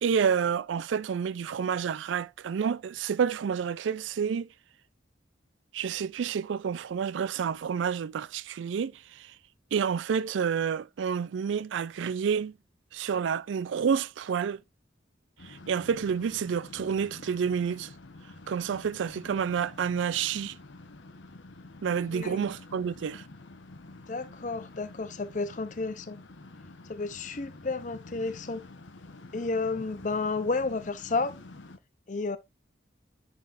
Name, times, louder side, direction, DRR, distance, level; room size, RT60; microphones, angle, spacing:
voice 1, 0.0-4.5 5.7-9.3 9.7-12.5 12.9-14.6 15.5-17.9 18.5-20.5 21.8-23.2, right 7 dB, 85° right, 0.4 m, -29 dB
sound 1, 15.4-31.8, left 2 dB, 85° left, 1.0 m, -48 dB
voice 2, 22.1-22.4 24.1-26.2 26.9-28.6 29.3-31.4 32.1-32.4, left 3 dB, 40° left, 0.6 m, -31 dB
9.5 x 4.2 x 2.5 m
head